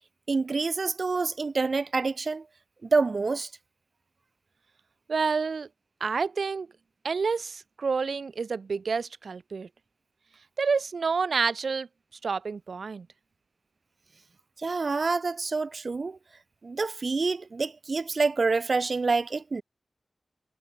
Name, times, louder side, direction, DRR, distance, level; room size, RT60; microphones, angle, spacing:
voice 1, 0.3-2.4 2.8-3.5 14.6-16.2 16.6-19.6, right 4 dB, 55° right, 1.6 m, -27 dB
voice 2, 5.1-5.7 6.0-6.7 7.0-9.7 10.6-11.9 12.2-13.1, right 5 dB, 75° right, 3.8 m, -28 dB
wide cardioid pair, 80°, 0 cm